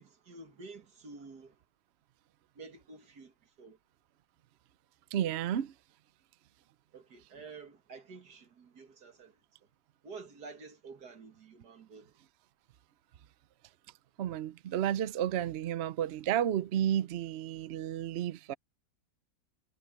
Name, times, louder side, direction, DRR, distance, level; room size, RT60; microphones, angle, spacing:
voice 1, 0.0-1.6 2.6-3.8 6.9-9.4 10.0-12.1, right 4 dB, 90° right, 2.6 m, -50 dB
voice 2, 5.1-5.7 14.2-18.5, right 10 dB, 60° right, 0.7 m, -32 dB
omnidirectional pair, 1.7 m